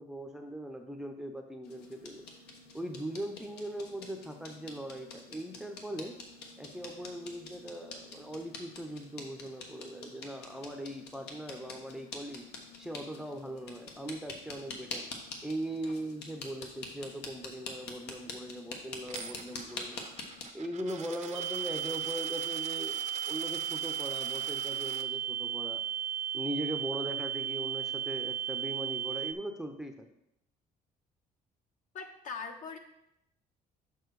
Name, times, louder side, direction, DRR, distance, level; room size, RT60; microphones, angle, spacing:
voice 1, 0.0-2.2 2.7-6.2 6.6-12.4 12.8-15.1 15.4-20.0 20.5-25.8 26.3-30.1, right 1 dB, 5° right, 4 dB, 0.7 m, -40 dB
sound 1, 1.6-20.4, left 3 dB, 75° left, 1.4 m, -46 dB
Coin (dropping), 19.1-25.0, right 7 dB, 45° right, 0.7 m, -45 dB
sound 2, 21.3-29.3, right 9 dB, 85° right, 0.6 m, -35 dB
voice 2, 31.9-32.8, left 5 dB, 50° left, 4 dB, 1.1 m, -41 dB
6.8 x 5.9 x 4.7 m, 0.80 s
cardioid pair, 110°, 17 cm